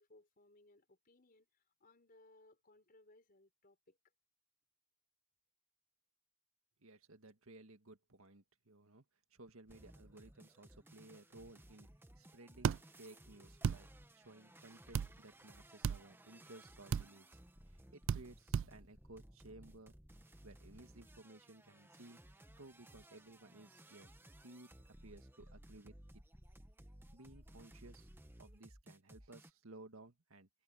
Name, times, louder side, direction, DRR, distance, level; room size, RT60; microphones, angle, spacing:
voice 1, 0.0-4.0, left 2 dB, 45° left, 4.7 m, -66 dB
voice 2, 6.8-9.0 9.3-11.9 12.2-13.9 14.1-17.4 17.7-19.9 20.4-22.2 22.6-24.2 24.4-24.7 25.0-26.0 27.1-28.1 28.4-30.5, right 2 dB, 80° right, 1.9 m, -58 dB
sound 1, 9.7-29.5, right 1 dB, 10° right, 1.4 m, -59 dB
sound 2, 12.6-12.8 13.6-13.8 14.9-15.1 15.8-16.0 16.9-17.1 18.1-18.2 18.5-18.7, right 7 dB, 60° right, 0.3 m, -33 dB
head